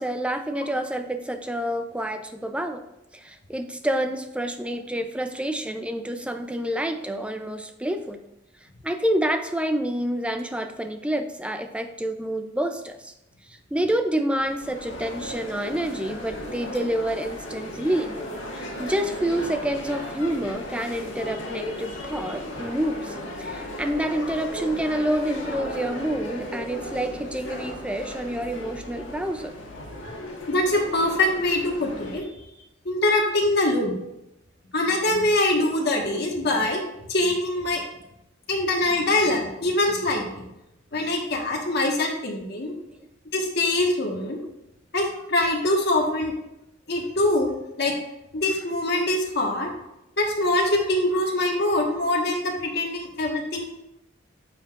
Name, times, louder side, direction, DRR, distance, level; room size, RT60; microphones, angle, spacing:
voice 1, 0.0-2.8 3.1-8.2 8.8-13.1 13.5-18.2 18.6-29.5, right 1 dB, 5° right, 7 dB, 0.5 m, -28 dB
sound 1, 14.4-32.2, left 1 dB, 75° left, 1.8 m, -36 dB
voice 2, 30.5-32.3 32.8-33.9 34.7-36.8 37.1-37.8 38.5-40.4 40.9-42.7 43.3-44.4 44.9-46.3 46.9-47.9 48.3-49.7 50.2-53.6, left 2 dB, 60° left, -1 dB, 1.5 m, -23 dB
9.8 x 6.9 x 2.5 m, 0.88 s
head